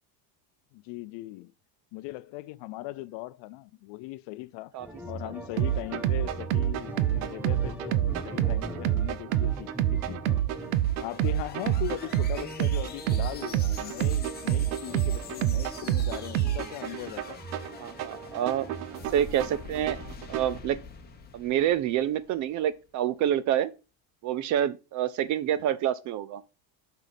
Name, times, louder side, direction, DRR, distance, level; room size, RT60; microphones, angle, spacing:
voice 1, 0.7-1.5 1.9-4.7 5.1-10.4 11.0-17.4, left 19 dB, 60° left, 0.6 m, -39 dB
sound 1, 4.8-19.4, right 1 dB, 5° right, 0.7 m, -43 dB
sound 2, 5.6-20.6, right 13 dB, 90° right, 0.8 m, -28 dB
sound 3, 10.4-22.6, left 5 dB, 20° left, 1.3 m, -46 dB
voice 2, 17.8-18.7 19.1-20.0 20.3-20.8 21.3-23.7 24.2-26.4, right 11 dB, 40° right, 0.4 m, -27 dB
6.0 x 5.7 x 5.1 m
cardioid pair, 160°, 48 cm